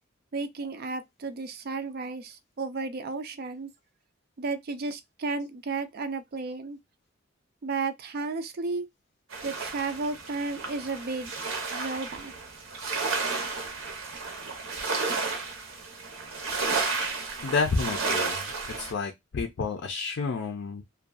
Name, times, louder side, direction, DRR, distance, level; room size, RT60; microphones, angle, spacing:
voice 1, 0.3-3.7 4.4-6.8 7.6-8.9 9.4-11.3 11.7-12.3, right 3 dB, 50° right, 0.4 m, -33 dB
sound 1, 9.3-18.9, right 4 dB, 75° right, 0.7 m, -32 dB
voice 2, 17.4-18.4 18.8-20.8, left 4 dB, 60° left, 0.4 m, -29 dB
2.5 x 2.2 x 2.3 m
head